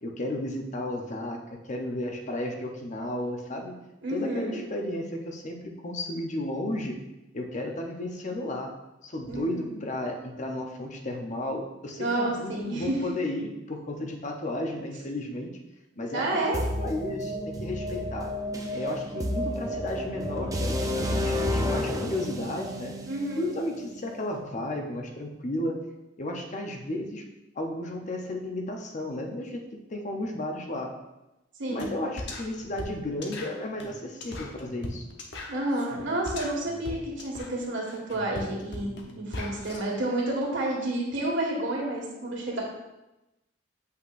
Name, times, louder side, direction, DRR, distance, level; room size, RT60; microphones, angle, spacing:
voice 1, 0.0-3.7 4.1-7.0 7.3-8.7 9.0-15.5 16.0-18.3 18.7-23.0 23.4-25.8 26.2-27.2 27.5-29.6 29.9-31.0 31.7-35.1, left 1 dB, 40° left, 2 dB, 0.8 m, -33 dB
voice 2, 4.0-4.6 9.3-9.7 12.0-13.0 16.1-16.7 23.0-23.4 31.6-32.0 35.5-42.6, right 1 dB, 75° right, -2 dB, 1.8 m, -30 dB
sound 1, 16.5-24.4, left 1 dB, 20° right, 0.5 m, -31 dB
sound 2, 31.8-31.9 32.2-39.8, left 2 dB, 65° left, 0.9 m, -39 dB
7.9 x 5.7 x 2.6 m, 0.98 s
head